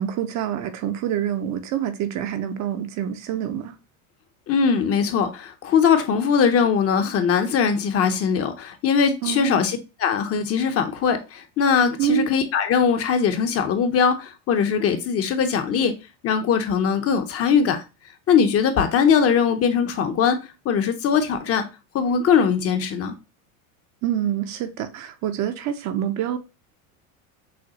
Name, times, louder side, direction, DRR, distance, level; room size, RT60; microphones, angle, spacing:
voice 1, 0.0-3.7 9.2-9.7 12.0-12.3 24.0-26.4, right 10 dB, 40° right, 0.6 m, -26 dB
voice 2, 4.5-15.9 16.2-17.8 18.3-20.4 20.6-21.6 21.9-23.1, left 6 dB, 35° left, 0.7 m, -21 dB
6.4 x 2.3 x 2.8 m
supercardioid pair, 120°, 42 cm